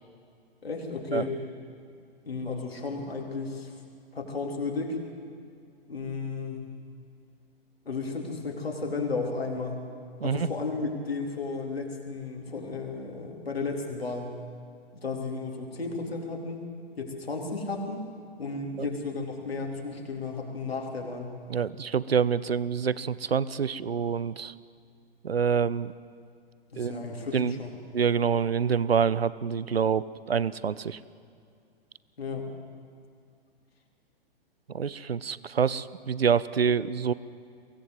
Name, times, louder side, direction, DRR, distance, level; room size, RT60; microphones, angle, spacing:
voice 1, 0.6-1.3 2.2-3.7 4.1-5.0 5.9-6.7 7.9-9.8 10.2-14.3 14.9-16.6 17.0-18.1 18.4-21.3 26.7-27.8 32.2-32.5, left 4 dB, 75° left, 0 dB, 3.9 m, -33 dB
voice 2, 21.5-24.5 25.2-25.9 26.8-27.0 27.3-27.6 27.9-31.0 34.7-37.1, right 7 dB, 75° right, 18 dB, 0.8 m, -26 dB
23.5 x 17.0 x 8.0 m, 2.3 s
figure-of-eight pair, 110°, 30 cm